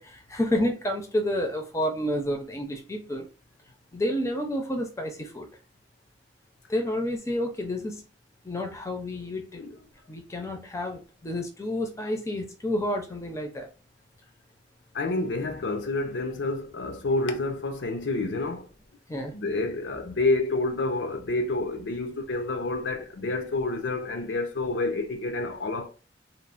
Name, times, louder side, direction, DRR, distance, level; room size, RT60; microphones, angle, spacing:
voice 1, 0.0-3.3 3.9-5.5 6.7-8.0 8.4-9.6 10.1-13.7 19.1-19.3, left 1 dB, 15° left, 0.5 m, -30 dB
voice 2, 14.9-18.7 19.3-25.9, left 2 dB, 80° left, 0.5 m, -28 dB
3.0 x 2.0 x 2.4 m
head